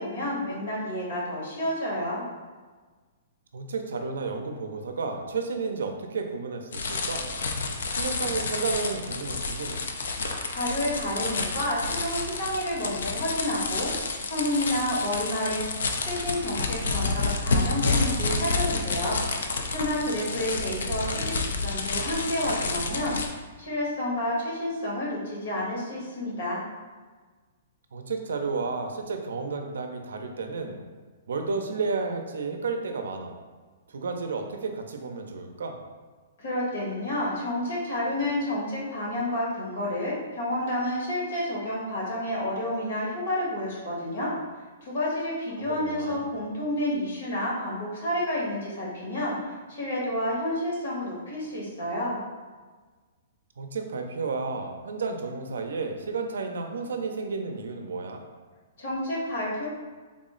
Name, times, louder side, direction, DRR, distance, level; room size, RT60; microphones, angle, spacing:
voice 1, 0.0-2.2 10.5-13.9 14.2-15.6 16.0-19.2 19.7-23.2 23.6-26.6 36.4-44.3 44.8-52.2 58.8-59.7, left 1 dB, 65° left, -5 dB, 1.4 m, -30 dB
voice 2, 3.5-7.3 7.9-9.8 20.3-21.4 27.9-30.8 31.3-33.4 33.9-35.8 45.6-46.3 53.6-58.2, right 4 dB, 85° right, 5 dB, 0.4 m, -32 dB
sound 1, 6.7-23.3, left 3 dB, 80° left, 0.4 m, -29 dB
3.5 x 2.0 x 3.7 m, 1.4 s
hypercardioid pair, 160°, 0 cm